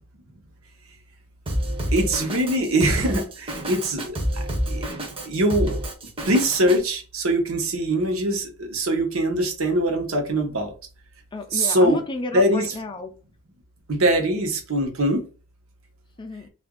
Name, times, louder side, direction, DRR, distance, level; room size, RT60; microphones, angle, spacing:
Drum kit, 1.5-6.8, equal, 25° right, 0.7 m, -28 dB
voice 1, 1.9-4.8 5.2-5.8 6.2-10.7 11.5-12.0 12.3-12.7 13.9-15.3, right 1 dB, 65° right, 0.9 m, -22 dB
voice 2, 11.3-13.1 16.2-16.5, left 2 dB, 20° left, 0.4 m, -32 dB
2.8 x 2.5 x 3.7 m
head